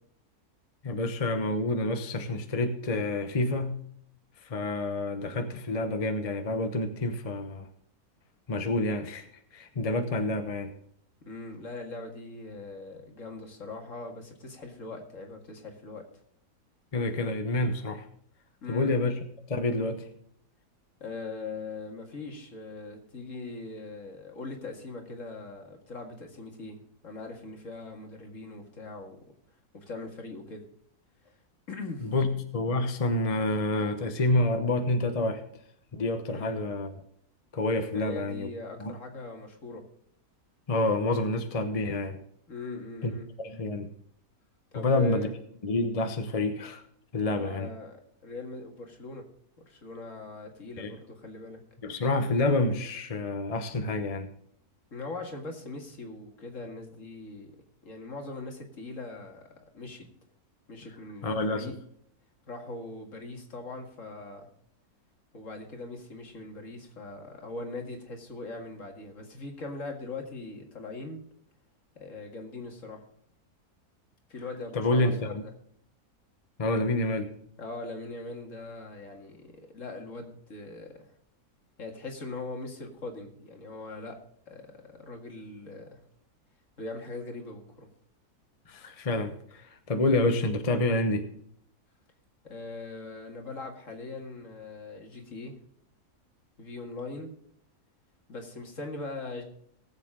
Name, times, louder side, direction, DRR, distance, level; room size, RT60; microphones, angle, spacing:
voice 1, 0.8-3.8 4.4-7.6 8.5-9.3 9.5-10.7 16.9-18.0 18.7-19.2 19.5-20.1 32.0-35.4 35.9-37.0 37.5-38.5 38.8-38.9 40.7-42.2 43.0-43.1 43.4-43.9 44.7-45.3 45.6-46.8 47.1-47.7 50.8-50.9 51.8-54.3 61.2-61.7 74.7-75.2 76.6-77.3 88.7-91.3, left 2 dB, 30° left, 7 dB, 0.8 m, -28 dB
voice 2, 11.2-16.1 18.6-18.9 21.0-26.8 27.0-29.2 29.7-30.6 31.7-32.1 36.3-36.6 37.9-39.9 42.5-43.3 44.7-45.3 47.4-49.3 49.7-51.6 54.9-57.5 57.8-59.5 59.7-60.1 60.7-61.7 62.5-64.5 65.3-71.2 72.0-73.0 74.3-75.5 77.6-81.1 81.8-84.2 84.5-86.0 86.8-87.9 92.4-95.6 96.6-97.3 98.3-99.4, left 2 dB, 55° left, 3 dB, 2.2 m, -41 dB
18.5 x 7.6 x 3.7 m, 0.67 s
omnidirectional pair, 1.6 m